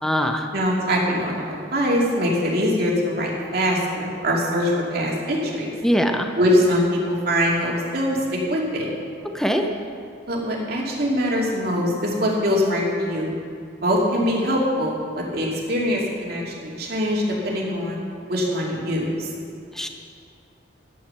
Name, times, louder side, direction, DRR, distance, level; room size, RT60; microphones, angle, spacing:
voice 1, 0.0-0.5 5.8-6.3 9.3-9.7 19.7-19.9, equal, 5° left, 4 dB, 0.8 m, -21 dB
voice 2, 0.5-1.5 1.7-5.7 6.4-8.2 8.5-8.9 10.3-13.3 13.8-18.0 18.3-19.3, equal, 55° right, -3 dB, 2.7 m, -23 dB
11.5 x 9.9 x 6.9 m, 2.4 s
head